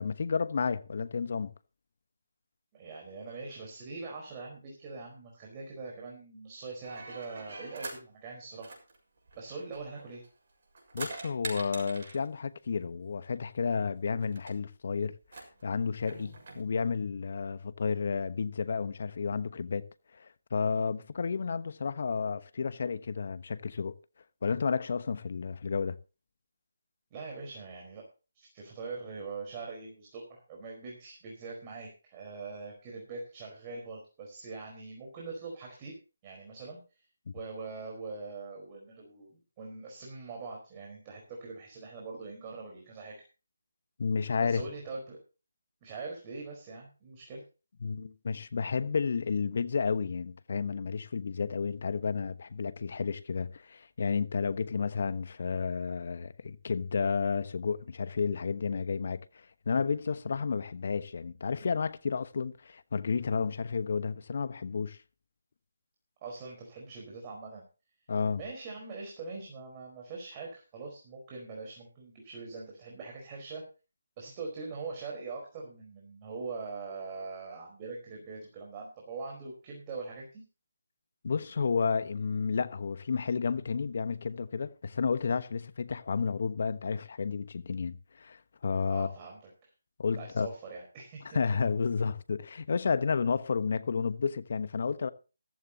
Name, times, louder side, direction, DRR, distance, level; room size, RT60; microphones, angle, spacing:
voice 1, 0.0-1.5 10.9-19.9 20.1-24.0 24.4-26.0 37.3-37.4 44.0-44.6 47.8-59.2 59.7-65.0 68.1-68.4 81.2-89.1 90.0-90.5 91.3-95.1, left 5 dB, 50° left, 1.1 m, -31 dB
voice 2, 2.7-8.7 9.3-10.2 27.1-28.0 28.3-35.9 36.2-36.8 37.3-43.2 44.4-45.2 45.8-47.4 66.2-67.6 68.4-73.6 74.2-80.4 88.8-89.7 90.2-91.4, right 4 dB, 25° right, 4.5 m, -42 dB
sound 1, 6.8-8.0 8.6-10.3 10.6-12.3 13.4-13.5 13.7-13.8 14.2-14.5 15.2-16.6, right 3 dB, 45° right, 6.7 m, -44 dB
15.0 x 14.5 x 2.9 m
figure-of-eight pair, 155°, 0 cm